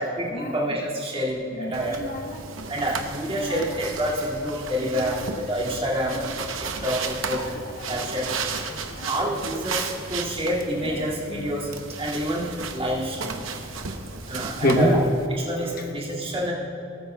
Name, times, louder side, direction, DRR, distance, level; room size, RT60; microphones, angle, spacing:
voice 1, 0.0-2.0 2.7-5.2 5.5-6.2 6.8-7.4 7.9-8.2 9.0-11.7 12.0-13.4 14.3-15.0 15.4-16.5, equal, 30° right, -6 dB, 2.3 m, -28 dB
voice 2, 1.5-2.4 2.8-2.9 3.2-3.7 4.8-5.3 6.1-6.4 7.3-7.9 8.5-9.4 10.8-11.0 11.3-11.7 14.6-15.0 15.8-15.9, left 1 dB, 45° left, 2 dB, 1.0 m, -29 dB
sound 1, 1.7-15.3, right 5 dB, 90° right, 0.9 m, -34 dB
20.5 x 9.1 x 2.3 m, 3.0 s
head